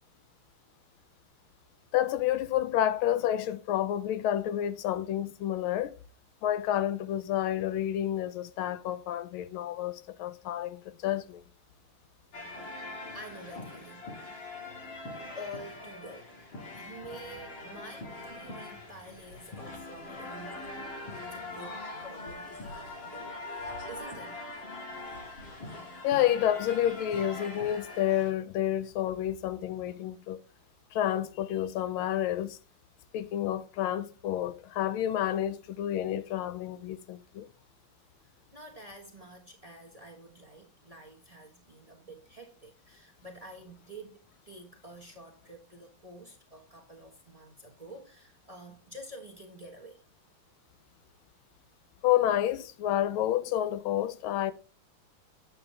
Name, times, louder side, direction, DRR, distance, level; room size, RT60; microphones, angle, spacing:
voice 1, 1.9-5.9 6.4-11.4 26.0-30.4 30.9-32.6 33.1-37.5 52.0-54.5, left 11 dB, 80° left, 1.4 m, -29 dB
sound 1, 12.3-28.3, left 2 dB, 60° left, 2.7 m, -42 dB
voice 2, 13.1-14.1 15.3-24.4 38.2-50.0, right 1 dB, 20° right, 1.1 m, -48 dB
9.0 x 7.8 x 3.4 m
omnidirectional pair, 2.3 m